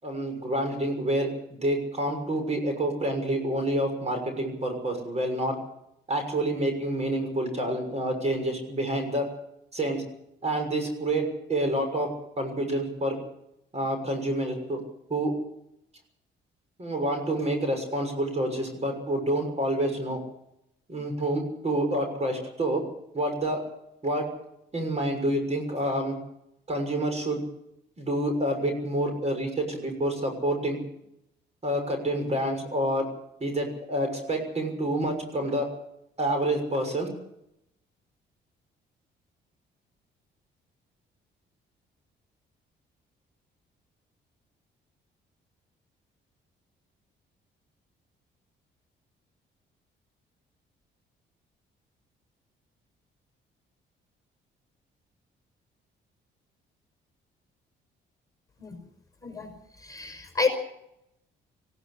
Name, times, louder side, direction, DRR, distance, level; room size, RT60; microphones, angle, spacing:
voice 1, 0.0-5.5 6.1-9.2 9.7-10.0 10.4-11.2 11.5-12.1 12.4-13.2 13.7-14.8 15.1-15.3 16.8-20.2 20.9-22.8 23.1-23.6 24.0-24.2 24.7-26.1 26.7-27.4 28.0-30.8 31.6-33.0 33.4-35.7 36.2-37.1, right 1 dB, 35° right, 5 dB, 6.4 m, -28 dB
voice 2, 59.2-59.5 59.8-60.5, left 4 dB, 15° left, 4 dB, 5.4 m, -29 dB
19.5 x 16.0 x 8.4 m, 0.81 s
cardioid pair, 90°, 20 cm